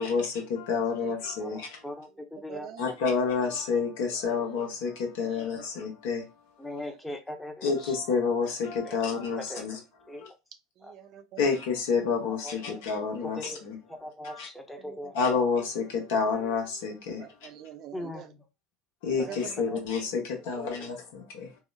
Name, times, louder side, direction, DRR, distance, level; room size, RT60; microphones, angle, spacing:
voice 1, 0.0-1.8 2.8-6.2 7.6-9.8 10.2-10.3 11.4-13.8 14.2-14.5 15.1-17.2 19.0-21.5, left 5 dB, 70° left, 0.8 m, -29 dB
voice 2, 1.4-3.0 4.4-4.5 6.6-7.9 8.8-9.7 10.1-10.2 10.8-10.9 12.3-12.8 13.2-13.6 13.9-15.2 17.9-18.5 19.2-19.4 19.7-19.8 20.5-20.9, left 1 dB, 5° left, 0.7 m, -41 dB
voice 3, 2.5-2.8 5.2-5.6 8.4-8.5 9.6-9.7 10.8-11.5 14.9-15.1 17.1-18.3 19.2-19.8 20.8-20.9, right 10 dB, 50° right, 0.4 m, -45 dB
2.9 x 2.0 x 2.2 m
hypercardioid pair, 80°, 0 cm